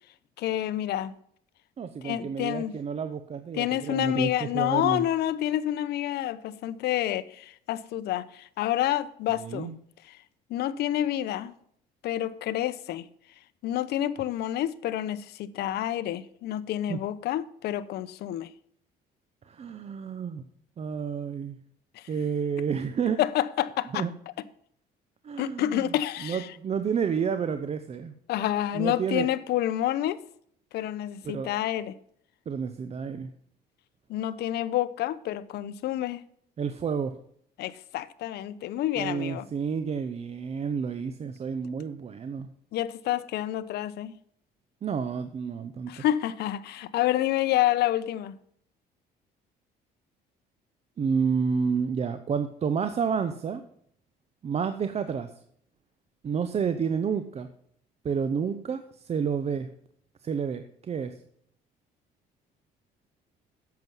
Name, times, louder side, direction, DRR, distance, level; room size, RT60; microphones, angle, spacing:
voice 1, 0.4-1.1 2.0-2.7 3.5-9.7 10.1-10.2 10.5-11.5 12.0-13.0 13.6-18.5 21.9-22.0 23.2-24.0 25.4-26.5 28.3-30.2 30.7-31.9 34.1-36.2 37.6-39.5 42.7-44.1 45.9-48.4, left 12 dB, 75° left, 0.8 m, -28 dB
voice 2, 1.8-5.0 9.3-9.7 16.9-17.0 19.5-20.4 20.8-21.6 22.1-23.2 23.9-24.1 25.2-28.1 28.7-29.3 31.2-31.5 32.5-33.3 36.6-37.1 39.0-42.5 44.8-46.0 51.0-53.6 54.4-55.3 56.2-57.5 58.0-59.7 60.2-61.2, right 6 dB, 40° right, 0.8 m, -30 dB
10.5 x 7.8 x 5.6 m
cardioid pair, 110°, 17 cm